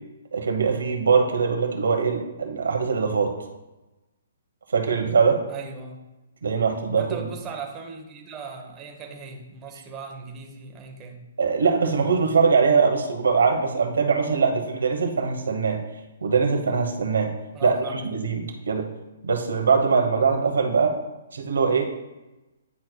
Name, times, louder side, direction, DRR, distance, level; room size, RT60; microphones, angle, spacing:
voice 1, 0.3-3.3 4.7-5.4 6.4-7.0 11.4-15.8 16.2-17.3 17.6-18.9 19.2-21.0 21.3-21.8, right 5 dB, 85° right, 3 dB, 1.0 m, -22 dB
voice 2, 5.5-6.0 7.0-11.2 17.5-18.0, right 5 dB, 20° right, 2 dB, 0.9 m, -38 dB
9.5 x 4.4 x 2.2 m, 1.0 s
hypercardioid pair, 150°, 0 cm